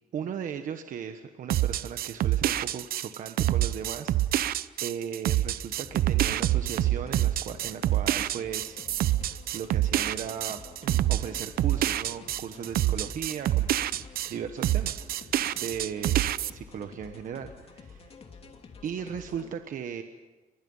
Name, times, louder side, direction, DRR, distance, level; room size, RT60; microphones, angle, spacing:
voice 1, 0.1-4.5 4.8-8.8 9.5-13.7 13.9-18.1 18.8-20.0, right 8 dB, 60° right, 7 dB, 1.3 m, -37 dB
sound 1, 1.5-14.3 14.6-16.5, right 13 dB, 85° right, 0.7 m, -26 dB
sound 2, 5.8-19.5, left 4 dB, 40° left, 2.9 m, -49 dB
30.0 x 24.0 x 5.6 m, 1.2 s
cardioid pair, 155°, 15 cm